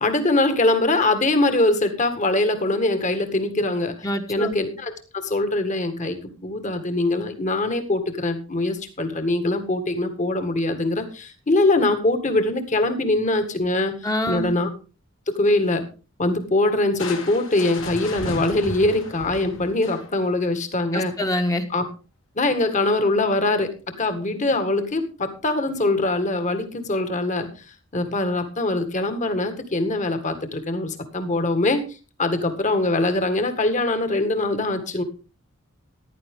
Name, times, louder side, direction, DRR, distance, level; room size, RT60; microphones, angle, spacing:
voice 1, 0.0-3.9 4.3-14.0 14.3-14.7 15.3-15.8 16.2-21.1 21.7-21.8 22.4-23.7 24.0-27.5 27.9-31.8 32.2-35.0, left 2 dB, 35° left, 8 dB, 1.9 m, -22 dB
voice 2, 4.0-4.6 14.0-14.5 20.9-21.6, left 1 dB, 15° left, 5 dB, 1.3 m, -25 dB
Crushing, 17.0-20.4, left 2 dB, 65° left, 2.8 m, -34 dB
14.5 x 11.5 x 3.7 m, 0.34 s
head